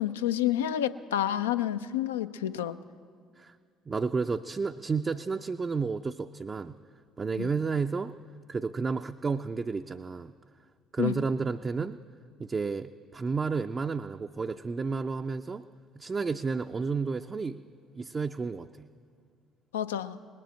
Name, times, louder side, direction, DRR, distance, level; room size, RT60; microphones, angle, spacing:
voice 1, 0.0-2.8 7.4-7.5 11.0-11.1 19.7-20.2, left 11 dB, 85° left, 12 dB, 0.4 m, -29 dB
voice 2, 3.9-6.7 7.2-8.1 8.5-10.3 10.9-12.0 12.4-15.6 16.0-17.6 17.9-18.7, right 4 dB, 35° right, 6 dB, 0.4 m, -31 dB
19.0 x 7.6 x 9.0 m, 2.1 s
hypercardioid pair, 55°, 0 cm